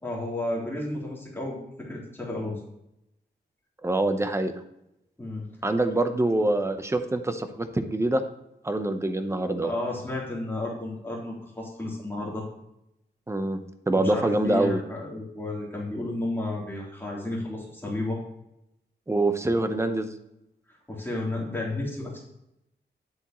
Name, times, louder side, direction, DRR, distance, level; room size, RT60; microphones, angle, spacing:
voice 1, 0.0-2.6 5.2-5.5 9.6-12.5 13.9-18.2 20.9-22.2, left 2 dB, 10° left, -4 dB, 3.4 m, -32 dB
voice 2, 3.8-4.5 5.6-8.2 8.6-9.7 13.3-13.6 13.9-14.8 19.1-20.1, right 2 dB, 15° right, 8 dB, 0.9 m, -25 dB
9.8 x 8.0 x 3.1 m, 0.84 s
wide cardioid pair, 120°, 18 cm